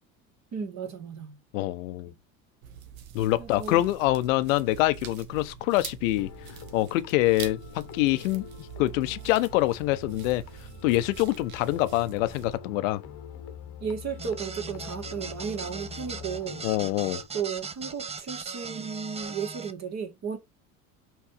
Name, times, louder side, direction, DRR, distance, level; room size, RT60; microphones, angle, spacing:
voice 1, 0.5-1.4 2.1-2.2 3.4-3.8 13.8-16.6 17.3-20.4, right 6 dB, 40° right, 2.3 m, -34 dB
voice 2, 1.5-2.1 3.1-6.3 6.7-10.4 10.8-13.0 16.6-17.2, left 17 dB, 65° left, 0.8 m, -25 dB
sound 1, 2.6-12.6, right 9 dB, 75° right, 1.1 m, -44 dB
sound 2, 6.2-17.3, left 7 dB, 40° left, 1.1 m, -45 dB
sound 3, 14.2-19.7, right 5 dB, 15° right, 0.6 m, -39 dB
6.0 x 3.4 x 5.0 m
figure-of-eight pair, 70°, 43 cm